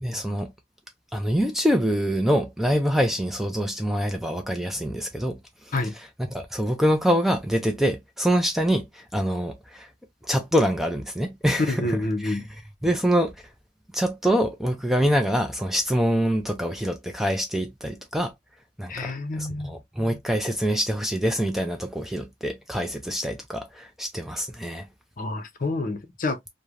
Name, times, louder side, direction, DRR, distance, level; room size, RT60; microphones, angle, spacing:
voice 1, 0.0-0.5 1.1-5.4 5.7-9.9 10.2-12.5 12.8-13.3 13.9-18.3 18.8-24.9, equal, ahead, 0.3 m, -25 dB
voice 2, 11.7-12.4 18.9-19.7 25.2-26.4, left 2 dB, 45° left, 0.6 m, -28 dB
3.1 x 2.1 x 2.4 m
head